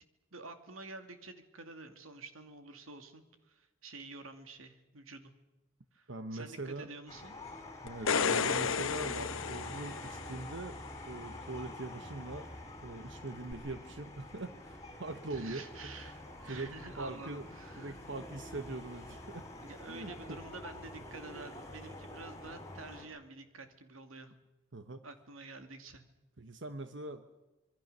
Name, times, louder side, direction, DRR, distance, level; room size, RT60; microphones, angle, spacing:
voice 1, 0.3-5.3 5.9-7.4 15.3-18.0 19.6-24.3 25.0-26.0, right 3 dB, 90° right, 7 dB, 2.5 m, -49 dB
voice 2, 6.1-6.9 7.8-10.8 11.0-12.5 12.8-15.9 16.5-17.5 17.8-19.5 19.9-20.4 24.7-25.0 26.4-27.3, right 2 dB, 65° right, 9 dB, 1.2 m, -42 dB
sound 1, 7.1-23.0, left 1 dB, 15° left, 4.0 m, -47 dB
sound 2, 7.9-10.4 13.5-13.6, left 6 dB, 85° left, 1.0 m, -32 dB
26.0 x 21.5 x 6.8 m, 1.1 s
head